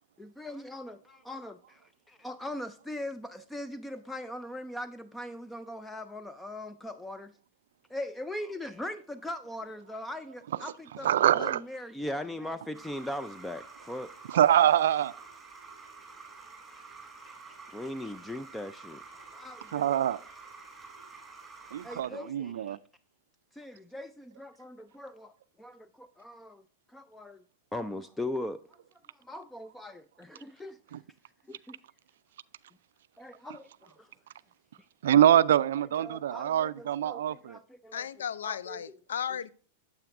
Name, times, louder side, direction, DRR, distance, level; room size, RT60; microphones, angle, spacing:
voice 1, 0.2-7.3 7.9-14.1 16.7-19.0 19.3-19.9 21.8-22.8 23.5-26.6 26.9-27.4 27.7-28.6 29.2-30.8 31.5-31.8 33.2-34.1 36.0-38.1 38.4-38.8, left 1 dB, 5° left, 0.4 m, -40 dB
voice 2, 11.0-11.6 14.3-15.1 19.7-20.2 21.7-22.8 30.9-31.0 35.0-37.6, right 11 dB, 75° right, 0.3 m, -24 dB
sound 1, 12.7-22.0, right 4 dB, 10° right, 3.1 m, -49 dB
voice 3, 37.9-39.5, left 8 dB, 80° left, 0.4 m, -35 dB
8.9 x 7.8 x 2.5 m
hypercardioid pair, 110°, 0 cm